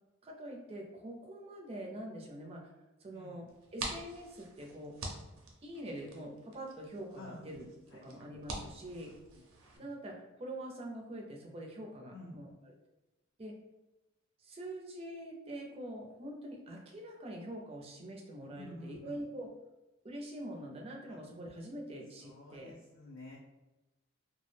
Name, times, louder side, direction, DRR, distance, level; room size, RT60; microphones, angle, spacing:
voice 1, 0.2-2.7 3.0-5.0 5.6-7.6 8.0-9.1 9.7-12.7 13.4-13.5 14.4-19.5 20.0-22.7, right 1 dB, 30° right, 0 dB, 0.4 m, -44 dB
sound 1, 3.5-9.8, right 2 dB, 85° right, 0.5 m, -46 dB
voice 2, 18.6-19.1 22.2-23.4, left 2 dB, 70° left, -6 dB, 0.5 m, -49 dB
2.2 x 2.0 x 3.1 m, 1.0 s
head